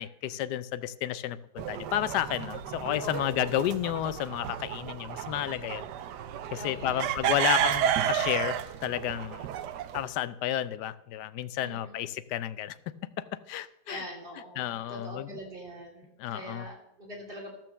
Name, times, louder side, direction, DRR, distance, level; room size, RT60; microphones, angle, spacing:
voice 1, 0.0-5.8 6.5-9.5 9.9-12.8 13.2-14.0 14.6-15.4 16.2-16.7, left 12 dB, 75° left, 15 dB, 1.1 m, -32 dB
sound 1, 1.6-10.0, right 10 dB, 75° right, 1.2 m, -32 dB
voice 2, 3.0-3.3 6.5-7.1 11.6-12.0 13.6-17.6, equal, 30° right, -1 dB, 3.3 m, -43 dB
13.5 x 6.0 x 7.0 m, 0.81 s
omnidirectional pair, 1.9 m